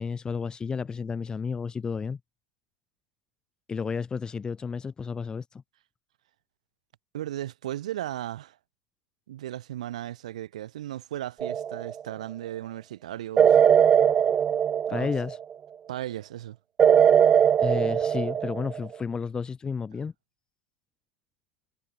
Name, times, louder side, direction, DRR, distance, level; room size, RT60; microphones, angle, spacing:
voice 1, 0.0-2.2 3.7-5.6 14.9-15.4 17.6-20.1, left 5 dB, 20° left, 3.8 m, -32 dB
voice 2, 7.1-8.6 9.3-13.6 14.9-15.1 15.9-16.6, right 13 dB, 70° right, 2.6 m, -36 dB
sound 1, 11.4-12.0 13.4-15.4 16.8-18.9, right 8 dB, 30° right, 0.5 m, -20 dB
hypercardioid pair, 90°, 4 cm